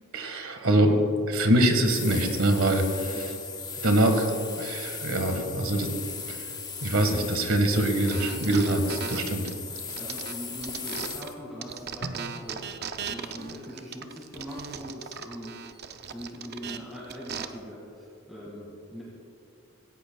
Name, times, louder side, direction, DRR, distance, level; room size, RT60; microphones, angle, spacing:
voice 1, 0.1-1.0 1.3-3.3 3.8-5.9 6.3-6.5 6.8-9.5 12.0-12.1, right 1 dB, 70° right, 5 dB, 1.6 m, -24 dB
sound 1, 1.7-11.3, left 5 dB, 20° left, 0.9 m, -37 dB
sound 2, 8.1-11.3 11.6-17.4, right 6 dB, 45° right, 0.6 m, -38 dB
voice 2, 9.7-15.6 16.1-19.0, equal, ahead, -7 dB, 2.0 m, -42 dB
17.0 x 16.5 x 2.3 m, 2.6 s
head